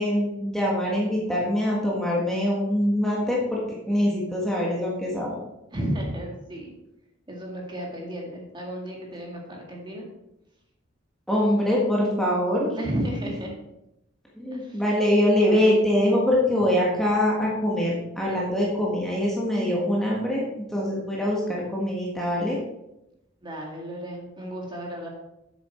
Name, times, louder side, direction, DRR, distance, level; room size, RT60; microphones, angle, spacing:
voice 1, 0.0-3.6 3.9-5.4 11.3-12.8 14.4-20.4 20.7-22.6, left 1 dB, ahead, -4 dB, 1.5 m, -23 dB
voice 2, 5.7-6.7 7.3-10.1 12.7-13.5 14.5-14.8 23.4-25.1, right 1 dB, 25° right, -1 dB, 1.9 m, -33 dB
8.4 x 7.0 x 4.4 m, 0.87 s
head